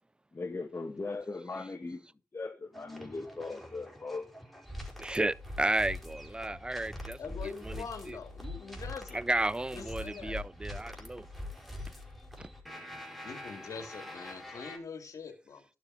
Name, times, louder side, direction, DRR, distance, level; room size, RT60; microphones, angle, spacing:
voice 1, 0.3-2.0 2.3-4.3, left 3 dB, 45° left, 2.1 m, -39 dB
sound 1, 2.7-14.8, left 1 dB, ahead, 5.5 m, -44 dB
voice 2, 5.0-8.2 9.1-11.3 12.4-12.5, right 2 dB, 15° right, 0.5 m, -33 dB
voice 3, 7.2-9.2 9.7-10.4 13.2-15.7, left 5 dB, 80° left, 2.3 m, -43 dB
11.5 x 7.5 x 5.0 m
cardioid pair, 50°, 6 cm